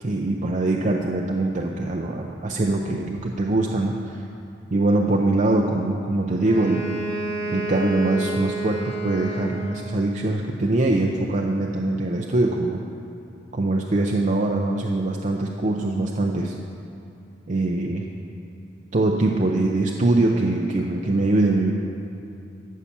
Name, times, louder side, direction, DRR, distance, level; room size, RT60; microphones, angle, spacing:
voice 1, 0.0-4.2 4.7-6.8 7.5-12.8 13.5-16.5 17.5-18.1 18.9-21.7, right 2 dB, 40° right, 1 dB, 0.5 m, -23 dB
Wind instrument woodwind instrument, 6.4-10.1, right 2 dB, 40° left, 1.6 m, -30 dB
13.0 x 5.6 x 7.2 m, 2.6 s
head